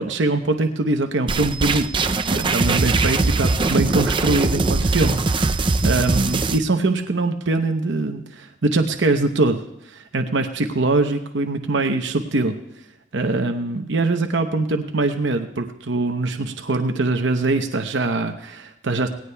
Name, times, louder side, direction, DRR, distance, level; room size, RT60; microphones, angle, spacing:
voice 1, 0.0-1.9 2.3-5.2 5.8-9.6 9.9-12.5 13.1-19.1, right 2 dB, 70° right, 5 dB, 0.8 m, -22 dB
sound 1, 1.3-6.6, right 3 dB, 25° right, 0.4 m, -21 dB
18.5 x 18.0 x 2.3 m, 0.85 s
head